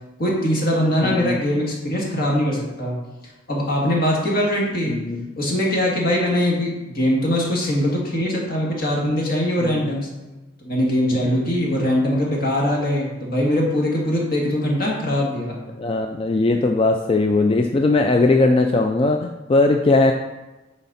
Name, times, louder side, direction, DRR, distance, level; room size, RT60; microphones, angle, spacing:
voice 1, 0.2-3.0 3.5-4.9 5.4-10.1 10.6-15.6, left 1 dB, 50° left, -2 dB, 1.9 m, -21 dB
voice 2, 1.0-1.4 4.9-5.2 9.6-9.8 15.8-20.1, left 2 dB, 30° left, 4 dB, 0.4 m, -19 dB
9.9 x 4.2 x 4.1 m, 1.1 s
head